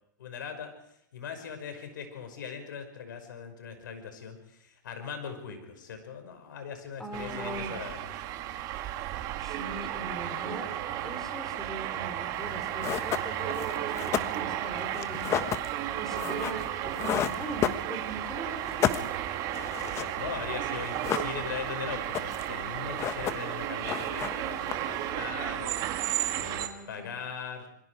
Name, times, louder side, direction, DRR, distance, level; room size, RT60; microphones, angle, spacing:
voice 1, 0.2-0.7 1.1-8.1 19.8-26.1 26.4-27.7, left 6 dB, 75° left, 7 dB, 5.6 m, -40 dB
voice 2, 7.0-7.8 9.4-10.7 11.0-19.1 26.5-27.1, equal, 5° left, 5 dB, 3.4 m, -41 dB
sound 1, 7.1-26.7, right 12 dB, 35° right, 1.8 m, -34 dB
sound 2, 12.4-12.5 12.8-18.3 18.6-20.2 20.4-20.5 20.8-21.7 22.0-22.6 22.8-23.6 23.8-25.1, left 9 dB, 25° left, 1.3 m, -32 dB
27.0 x 22.0 x 4.8 m, 0.76 s
hypercardioid pair, 135°, 11 cm